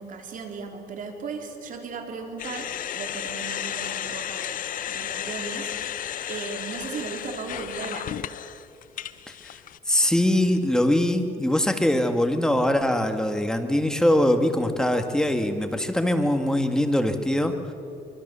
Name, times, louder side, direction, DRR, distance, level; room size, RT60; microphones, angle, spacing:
voice 1, 0.0-5.7 6.3-8.1, right 5 dB, 50° right, 3 dB, 3.8 m, -36 dB
sound 1, 2.4-9.8, left 10 dB, 55° left, 0.8 m, -33 dB
voice 2, 9.9-17.6, left 1 dB, 5° left, 6 dB, 1.9 m, -22 dB
24.5 x 23.5 x 7.0 m, 2.8 s
cardioid pair, 110°, 17 cm